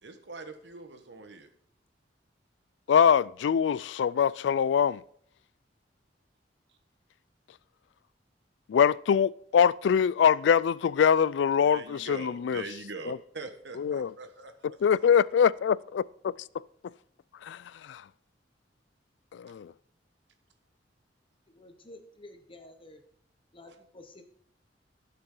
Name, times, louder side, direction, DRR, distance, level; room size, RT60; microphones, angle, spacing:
voice 1, 0.0-1.5 11.6-14.5, right 3 dB, 65° right, 1.3 m, -42 dB
voice 2, 2.9-5.0 8.7-12.6 13.1-13.2 13.8-14.1 14.8-16.3 17.4-17.6 17.9-18.0 19.3-19.7, left 7 dB, 70° left, 0.3 m, -23 dB
voice 3, 21.5-23.0 23.5-24.2, left 2 dB, 30° left, 1.2 m, -50 dB
16.0 x 6.8 x 3.8 m
head